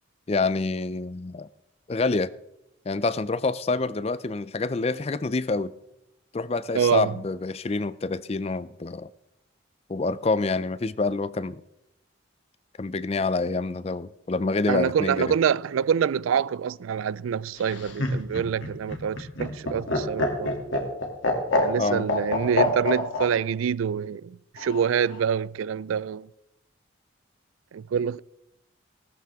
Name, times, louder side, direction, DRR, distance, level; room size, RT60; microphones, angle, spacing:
voice 1, 0.3-1.5 1.9-2.3 2.9-5.7 6.3-9.1 9.9-11.6 12.8-15.3 21.8-22.1, left 3 dB, 30° left, 0.4 m, -27 dB
voice 2, 6.7-7.1 14.7-20.5 21.6-26.3 27.7-28.2, right 7 dB, 90° right, 0.3 m, -26 dB
Laughter, 17.6-23.3 24.6-25.2, left 2 dB, 75° left, 2.5 m, -26 dB
17.5 x 13.0 x 3.6 m
head